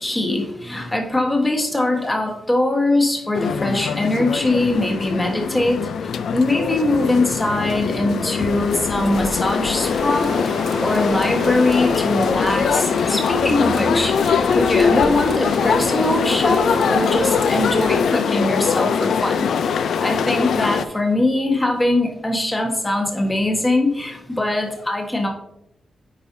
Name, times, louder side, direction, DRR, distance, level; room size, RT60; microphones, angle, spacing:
voice 1, 0.0-5.8 6.3-14.1 14.5-25.3, left 1 dB, 15° left, 2 dB, 1.3 m, -21 dB
sound 1, 3.3-20.9, left 6 dB, 80° left, 0.4 m, -22 dB
sound 2, 9.8-18.0, right 3 dB, 35° right, 0.8 m, -33 dB
8.9 x 5.0 x 2.7 m, 0.82 s
wide cardioid pair, 130°, 0 cm